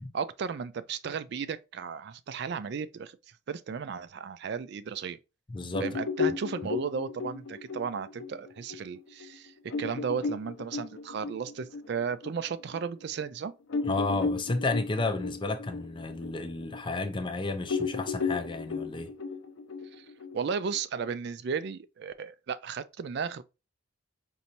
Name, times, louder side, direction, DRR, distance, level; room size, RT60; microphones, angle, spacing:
voice 1, 0.1-3.2 3.5-5.2 5.8-13.5 19.9-20.1 20.3-23.4, right 6 dB, 50° right, 0.3 m, -34 dB
voice 2, 5.5-5.9 13.9-19.1, left 3 dB, 20° left, 0.4 m, -32 dB
sound 1, 5.7-12.8 13.2-13.3 13.7-17.3 17.7-20.8, left 4 dB, 70° left, 0.6 m, -34 dB
5.2 x 2.6 x 2.9 m
head